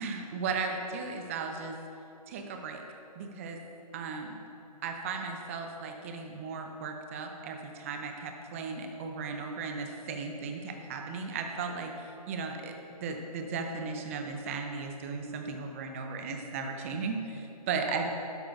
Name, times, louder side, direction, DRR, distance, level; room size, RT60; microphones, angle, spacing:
voice 1, 0.0-1.8 2.3-2.8 3.2-3.6 3.9-4.4 4.8-11.9 12.3-18.1, right 4 dB, 20° right, 4 dB, 0.7 m, -36 dB
12.0 x 4.7 x 5.9 m, 2.9 s
figure-of-eight pair, 150°, 20 cm